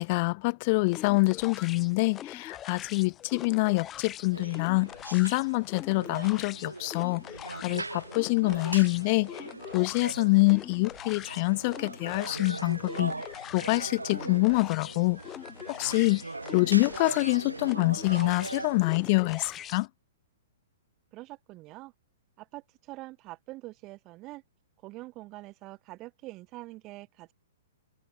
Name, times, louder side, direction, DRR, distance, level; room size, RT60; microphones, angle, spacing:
voice 1, 0.0-7.2 7.6-9.5 9.7-13.1 13.5-15.2 15.8-16.2 16.5-19.9, left 27 dB, 40° left, 0.4 m, -26 dB
sound 1, 0.9-19.9, left 11 dB, 20° left, 1.6 m, -43 dB
sound 2, 4.3-19.5, right 3 dB, 80° right, 1.8 m, -41 dB
voice 2, 21.1-21.9 22.4-24.4 24.8-27.3, right 20 dB, 30° right, 2.5 m, -45 dB
figure-of-eight pair, 110°, 0 cm